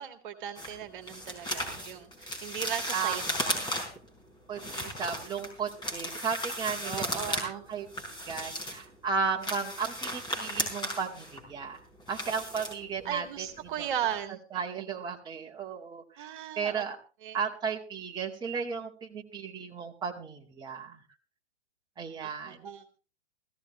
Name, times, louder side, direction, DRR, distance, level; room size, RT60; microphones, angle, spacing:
voice 1, 0.0-3.2 6.8-7.6 13.1-14.4 16.2-16.8 17.2-17.4 22.2-22.8, right 9 dB, 45° right, 8 dB, 1.9 m, -37 dB
sound 1, 0.6-4.1 4.5-7.5 7.7-8.9 9.3-13.2 13.5-13.7 14.1-14.2, equal, 15° left, 4.3 m, -35 dB
voice 2, 2.9-3.7 4.5-11.8 12.1-13.9 14.5-16.3 16.6-17.0 17.3-21.0 22.0-22.6, right 6 dB, 10° right, -1 dB, 2.0 m, -35 dB
17.5 x 15.0 x 3.2 m, 0.33 s
figure-of-eight pair, 115°, 34 cm